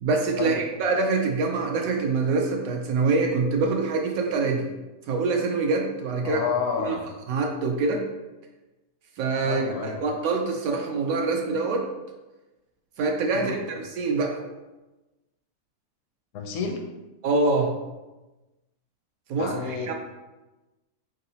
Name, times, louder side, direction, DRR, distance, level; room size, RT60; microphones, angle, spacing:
voice 1, 0.0-4.7 5.1-6.4 6.8-7.0 7.3-8.0 9.2-11.9 13.0-14.4 17.2-17.7 19.3-19.9, right 3 dB, 70° right, 2 dB, 1.0 m, -25 dB
voice 2, 6.2-7.1 9.4-10.0 13.3-13.6 16.3-16.8 19.4-19.9, left 5 dB, 70° left, 2 dB, 0.8 m, -30 dB
3.9 x 3.8 x 2.7 m, 1.1 s
omnidirectional pair, 1.6 m